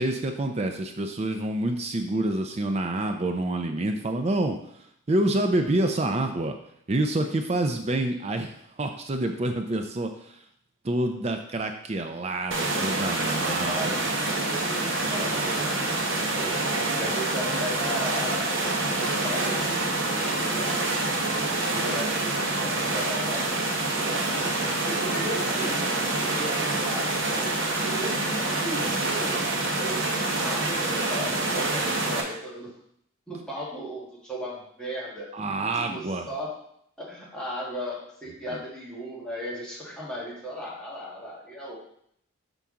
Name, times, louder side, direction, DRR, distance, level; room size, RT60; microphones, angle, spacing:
voice 1, 0.0-6.6 6.9-10.4 10.8-14.0 15.2-15.9 35.3-36.3 38.5-38.6, right 1 dB, 30° right, 5 dB, 0.4 m, -28 dB
sound 1, 12.5-32.2, right 2 dB, 60° right, 1.0 m, -27 dB
voice 2, 13.1-16.6 16.9-24.1 24.6-25.8 26.2-27.5 27.8-30.0 30.4-32.7 33.3-35.3 35.7-36.6 37.0-41.8, equal, 5° left, -6 dB, 1.5 m, -36 dB
5.7 x 5.3 x 3.6 m, 0.69 s
head